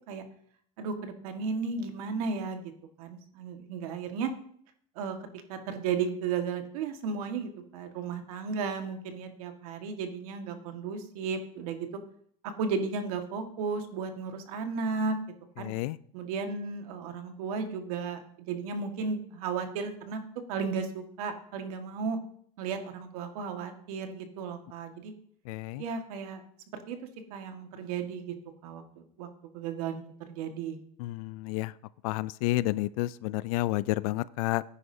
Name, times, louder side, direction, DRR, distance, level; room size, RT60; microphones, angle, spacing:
voice 1, 0.8-2.6 3.0-4.3 5.0-5.2 5.5-11.9 12.6-15.2 15.6-15.7 16.1-20.2 20.5-22.2 22.6-25.1 25.8-26.4 26.7-27.0 27.3-28.4 28.6-29.3 29.5-30.8, right 5 dB, 80° right, 6 dB, 1.7 m, -34 dB
voice 2, 15.6-16.0 25.5-25.8 31.0-31.7 32.0-34.6, left 18 dB, 75° left, 19 dB, 0.4 m, -30 dB
17.0 x 9.9 x 2.8 m, 0.63 s
supercardioid pair, 145°, 19 cm